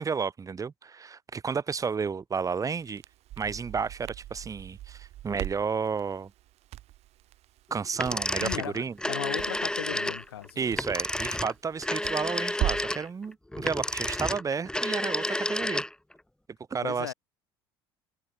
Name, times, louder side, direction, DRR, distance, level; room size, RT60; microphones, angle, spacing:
voice 1, 0.0-3.0 3.4-6.3 7.7-9.0 10.6-15.8 16.7-17.1, right 5 dB, 25° right, 1.4 m, -32 dB
Crackle, 2.8-13.0, right 15 dB, 55° right, 3.7 m, -40 dB
sound 1, 8.0-16.1, left 1 dB, 5° left, 4.5 m, -31 dB
voice 2, 8.4-10.6 16.8-17.1, left 11 dB, 85° left, 2.1 m, -37 dB
hypercardioid pair, 70°, 13 cm